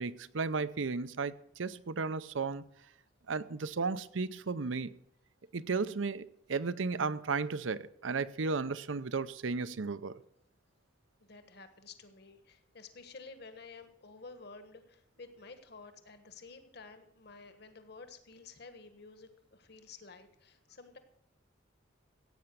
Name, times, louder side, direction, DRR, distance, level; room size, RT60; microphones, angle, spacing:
voice 1, 0.0-2.6 3.3-4.9 5.5-10.2, right 4 dB, 85° right, 0.7 m, -34 dB
voice 2, 11.2-21.0, left 4 dB, 55° left, 1.5 m, -52 dB
15.5 x 8.8 x 6.9 m
head